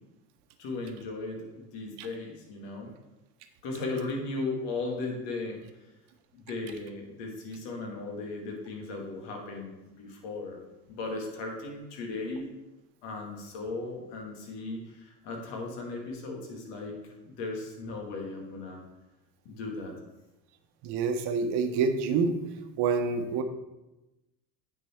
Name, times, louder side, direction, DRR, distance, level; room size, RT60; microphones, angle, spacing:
voice 1, 0.6-2.9 3.6-5.6 6.3-10.6 10.9-12.5 13.0-18.8 19.5-19.9, left 3 dB, 60° left, 0 dB, 2.1 m, -37 dB
voice 2, 20.8-22.4 22.8-23.4, right 5 dB, 55° right, 7 dB, 1.1 m, -27 dB
9.1 x 4.7 x 4.4 m, 0.99 s
hypercardioid pair, 70°, 49 cm